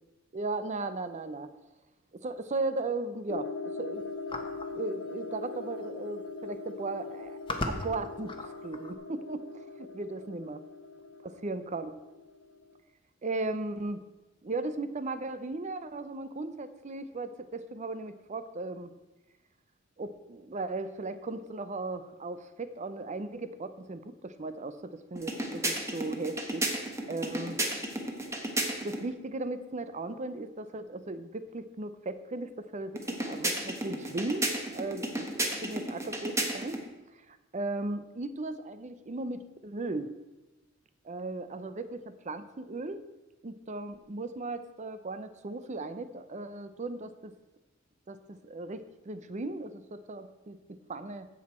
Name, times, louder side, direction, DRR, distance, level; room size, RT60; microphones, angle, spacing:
voice 1, 0.3-1.5 2.1-3.5 3.8-4.0 4.7-7.4 7.7-10.6 11.4-12.0 13.2-14.0 14.4-18.9 20.0-26.7 27.1-27.6 28.8-34.5 34.7-36.8 37.1-40.1 41.0-43.0 43.4-47.3 48.1-50.6 50.9-51.3, right 2 dB, 35° right, 11 dB, 0.6 m, -37 dB
sound 1, 3.3-12.8, left 3 dB, 65° left, 0.7 m, -41 dB
sound 2, 4.3-4.7 5.8-5.9 6.2-6.5 7.1-8.9, left 2 dB, 25° left, 1.0 m, -36 dB
sound 3, 25.2-29.0 33.0-36.9, right 1 dB, 15° right, 1.3 m, -33 dB
16.0 x 6.1 x 4.4 m, 1.0 s
head